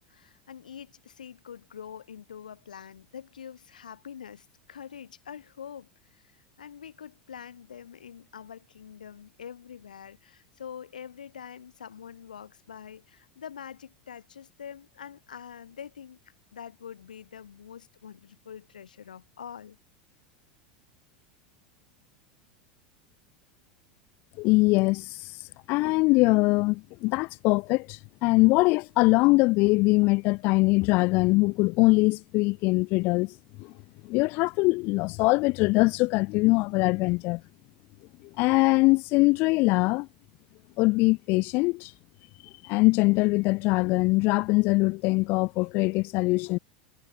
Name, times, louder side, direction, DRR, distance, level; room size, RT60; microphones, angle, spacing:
voice 1, 0.1-16.2 16.5-19.8, left 8 dB, 85° left, 2.2 m, -45 dB
voice 2, 24.4-25.1 25.7-33.3 33.6-33.7 34.0-37.4 38.4-40.1 40.8-41.9 42.6-46.6, left 24 dB, 55° left, 1.1 m, -22 dB
hypercardioid pair, 85°, 4 cm